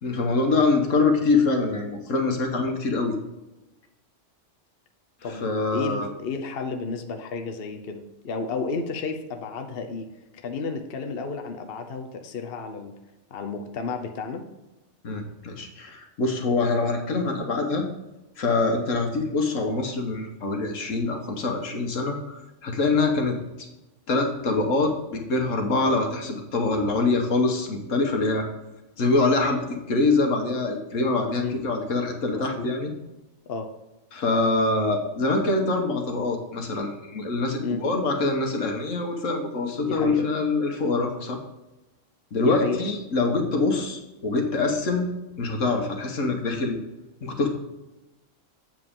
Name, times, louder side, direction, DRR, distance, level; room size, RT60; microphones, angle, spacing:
voice 1, 0.0-3.2 5.4-6.1 15.0-17.9 18.4-23.4 24.1-28.5 29.0-32.9 34.1-41.4 42.3-45.1 45.4-46.8 47.2-47.5, left 3 dB, 85° left, 3 dB, 1.7 m, -24 dB
voice 2, 5.7-10.1 10.3-12.9 13.3-14.4 31.4-31.5 32.3-32.7 33.5-33.7 37.6-37.8 39.8-40.3 42.4-42.8, left 4 dB, 55° left, 5 dB, 0.9 m, -32 dB
7.8 x 7.5 x 3.7 m, 1.0 s
omnidirectional pair, 1.3 m